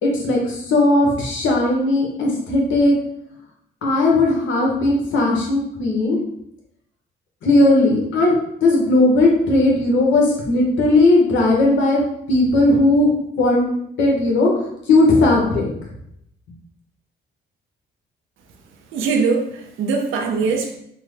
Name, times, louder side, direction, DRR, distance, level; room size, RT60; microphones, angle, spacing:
voice 1, 0.0-2.9 3.8-6.2 7.4-8.3 8.6-12.0 12.3-13.1 13.4-13.7 14.0-14.5 14.9-15.7, left 2 dB, 75° left, -1 dB, 1.0 m, -17 dB
voice 2, 18.9-20.8, right 4 dB, 85° right, 3 dB, 0.6 m, -21 dB
3.5 x 2.1 x 3.2 m, 0.74 s
cardioid pair, 90°, 20 cm